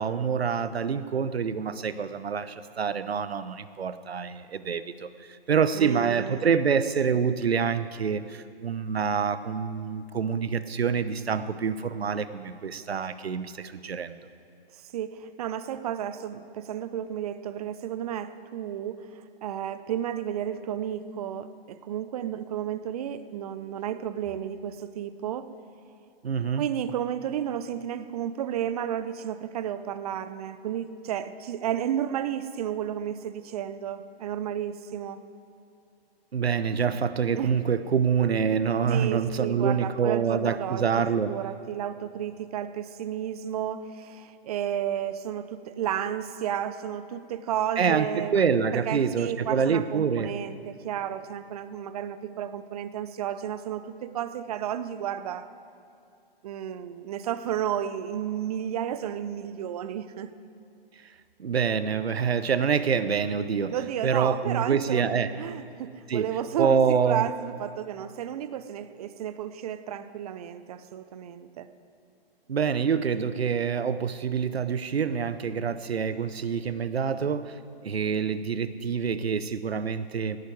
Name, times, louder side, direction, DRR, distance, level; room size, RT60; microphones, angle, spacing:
voice 1, 0.0-5.1 5.5-14.2 26.2-26.6 36.3-41.3 47.8-50.3 61.4-63.7 64.0-65.3 66.1-66.3 66.6-67.3 72.5-77.6 77.8-80.4, right 6 dB, 90° right, 14 dB, 0.8 m, -26 dB
voice 2, 5.7-6.5 14.7-25.5 26.6-35.2 37.4-37.6 38.9-40.9 41.1-48.4 48.7-55.5 56.4-60.3 63.7-71.7, right 10 dB, 40° right, 13 dB, 0.6 m, -32 dB
17.5 x 11.5 x 4.7 m, 2.5 s
hypercardioid pair, 140°, 30 cm